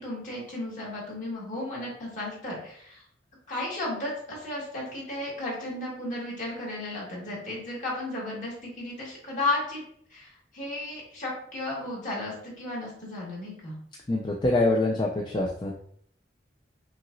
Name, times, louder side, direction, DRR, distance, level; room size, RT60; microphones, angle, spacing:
voice 1, 0.0-3.0 3.5-9.8 10.1-13.7, left 2 dB, 45° left, -5 dB, 1.8 m, -34 dB
voice 2, 14.1-15.8, left 2 dB, 25° left, 0 dB, 0.4 m, -25 dB
5.8 x 2.8 x 2.6 m, 0.63 s
head